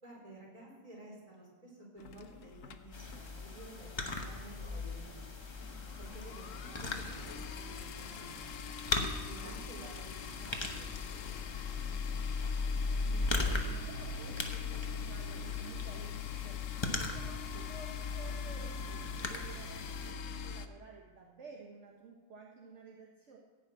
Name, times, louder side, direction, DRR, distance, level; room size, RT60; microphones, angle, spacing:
voice 1, 0.0-5.3 6.0-8.7 9.3-12.3, right 1 dB, 25° right, -4 dB, 3.9 m, -53 dB
sound 1, 2.0-3.8 4.1-4.3 4.6-4.7 4.9-20.7, left 5 dB, 70° left, 1.1 m, -40 dB
sound 2, 2.9-20.1, left 3 dB, 20° left, 0.9 m, -41 dB
voice 2, 9.4-9.9 13.0-23.4, right 4 dB, 55° right, -1 dB, 1.5 m, -53 dB
15.5 x 5.6 x 8.7 m, 1.4 s
omnidirectional pair, 1.5 m